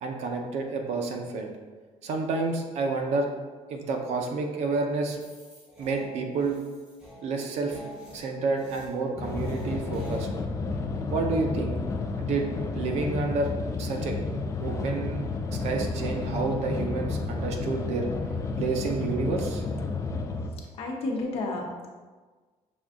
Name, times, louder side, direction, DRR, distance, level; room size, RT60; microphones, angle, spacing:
voice 1, 0.0-1.5 2.0-3.3 3.7-5.2 5.8-6.6 7.2-7.8 8.1-10.3 11.1-11.8 12.2-12.5 12.7-13.5 13.8-14.2 14.6-15.2 15.5-18.1 18.6-19.6, right 4 dB, 70° right, 2 dB, 0.7 m, -29 dB
sound 1, 5.1-10.2, left 2 dB, 10° right, 1.3 m, -46 dB
sound 2, 9.2-20.5, left 3 dB, 25° left, 0.4 m, -31 dB
voice 2, 20.5-21.9, left 2 dB, 55° left, -1 dB, 0.9 m, -32 dB
6.1 x 2.3 x 3.6 m, 1.4 s
cardioid pair, 165°, 12 cm